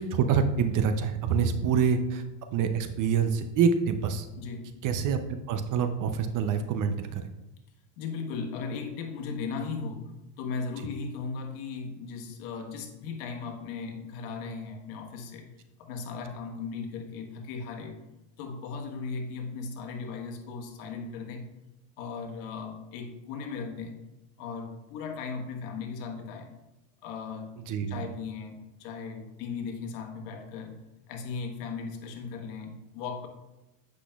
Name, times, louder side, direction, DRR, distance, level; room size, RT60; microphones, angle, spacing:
voice 1, 0.0-2.2 2.5-4.3 4.8-5.2 5.5-7.3 27.7-28.0, right 6 dB, 40° right, 9 dB, 0.6 m, -26 dB
voice 2, 4.4-4.7 8.0-18.0 18.4-21.4 22.0-24.0 24.4-26.5 27.0-27.5 27.9-30.8 31.1-33.3, left 5 dB, 70° left, 4 dB, 1.4 m, -37 dB
8.2 x 5.9 x 2.3 m, 0.97 s
supercardioid pair, 115°, 47 cm